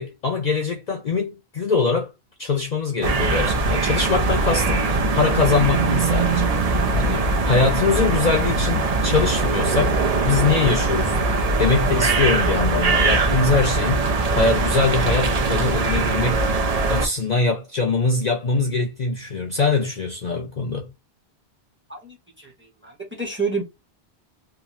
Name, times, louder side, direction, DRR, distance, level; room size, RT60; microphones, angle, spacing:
voice 1, 0.0-2.1 2.4-9.9 10.2-11.3 11.6-16.6 16.9-20.9, left 4 dB, 50° left, 0.6 m, -23 dB
sound 1, 3.0-17.1, right 3 dB, 50° right, 0.5 m, -21 dB
voice 2, 21.9-23.6, right 4 dB, 10° right, 0.8 m, -29 dB
2.9 x 2.4 x 2.4 m
omnidirectional pair, 1.1 m